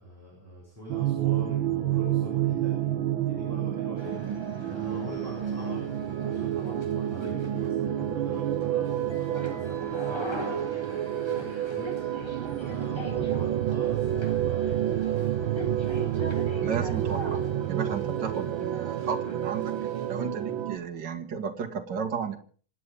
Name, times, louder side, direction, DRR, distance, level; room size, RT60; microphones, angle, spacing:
voice 1, 0.0-3.0 3.3-5.8 6.2-16.3, equal, 5° right, -4 dB, 7.7 m, -43 dB
sound 1, 0.9-20.8, right 11 dB, 85° right, 1.7 m, -29 dB
sound 2, 4.0-20.6, left 1 dB, 15° left, 4.1 m, -43 dB
voice 2, 16.6-17.4 17.7-19.7 20.1-22.4, right 6 dB, 60° right, 5 dB, 2.4 m, -33 dB
27.0 x 9.7 x 5.4 m, 0.43 s
omnidirectional pair, 2.1 m